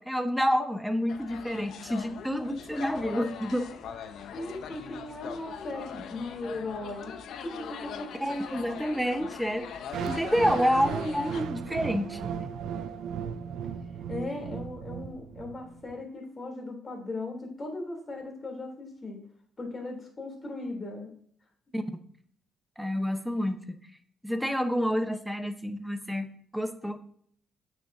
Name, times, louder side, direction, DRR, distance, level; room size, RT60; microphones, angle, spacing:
voice 1, 0.0-3.6 8.2-9.7 10.1-12.2 21.7-21.8 22.8-23.8 24.2-27.0, equal, ahead, 7 dB, 0.9 m, -28 dB
sound 1, 1.1-11.4, left 7 dB, 75° left, 0.8 m, -41 dB
voice 2, 4.3-7.1 7.7-8.1 14.1-19.2 19.6-21.1, left 2 dB, 30° left, 1 dB, 3.2 m, -38 dB
sound 2, 9.9-15.9, right 7 dB, 80° right, 0.5 m, -36 dB
9.1 x 6.2 x 2.7 m, 0.62 s
cardioid pair, 90°, 0 cm